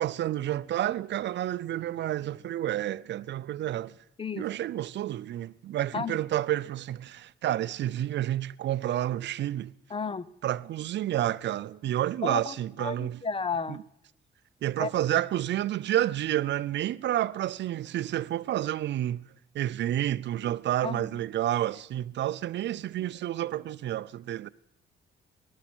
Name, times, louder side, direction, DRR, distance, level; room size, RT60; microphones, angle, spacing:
voice 1, 0.0-3.9 4.4-9.7 10.4-13.2 13.7-13.8 14.6-19.3 19.5-24.5, right 12 dB, 65° right, 0.5 m, -30 dB
voice 2, 9.9-10.3 12.2-13.8 14.8-14.9 20.8-21.2, left 5 dB, 25° left, 0.7 m, -33 dB
18.5 x 12.0 x 6.1 m
cardioid pair, 90°, 20 cm